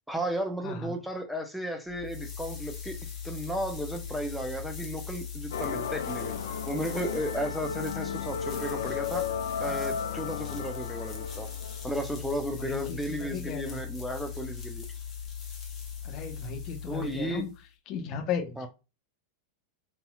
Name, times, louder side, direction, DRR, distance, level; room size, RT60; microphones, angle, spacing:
voice 1, 0.1-2.9 3.2-6.3 6.7-9.3 9.6-11.5 11.8-14.8 16.9-17.5 18.6-18.7, equal, ahead, 0.7 m, -34 dB
voice 2, 0.6-1.0 12.6-13.9 16.0-17.5 17.9-18.7, left 6 dB, 40° left, 0.7 m, -35 dB
sound 1, 1.9-17.6, left 7 dB, 20° left, 1.1 m, -39 dB
sound 2, 5.5-12.1, left 7 dB, 60° left, 0.4 m, -35 dB
4.1 x 2.7 x 2.3 m
figure-of-eight pair, 90°, 0 cm